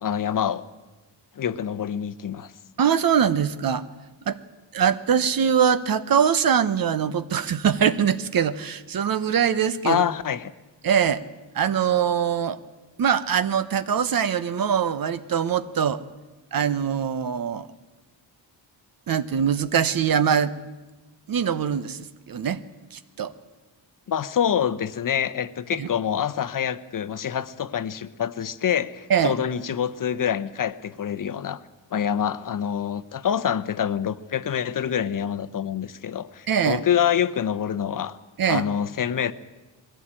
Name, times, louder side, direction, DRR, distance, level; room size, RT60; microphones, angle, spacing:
voice 1, 0.0-0.6 1.4-2.5 9.8-10.5 24.1-31.6 31.9-38.2 38.5-39.3, left 8 dB, 45° left, 14 dB, 0.9 m, -26 dB
voice 2, 2.8-3.9 4.3-4.4 4.7-10.0 10.8-11.2 11.5-12.6 13.0-16.0 16.5-17.7 19.1-20.5 21.3-22.6 22.9-23.3 25.8-25.9 29.1-29.4 36.5-36.8 38.4-38.6, right 8 dB, 50° right, 14 dB, 1.1 m, -23 dB
21.5 x 16.0 x 8.9 m, 1.2 s
cardioid pair, 130°, 45 cm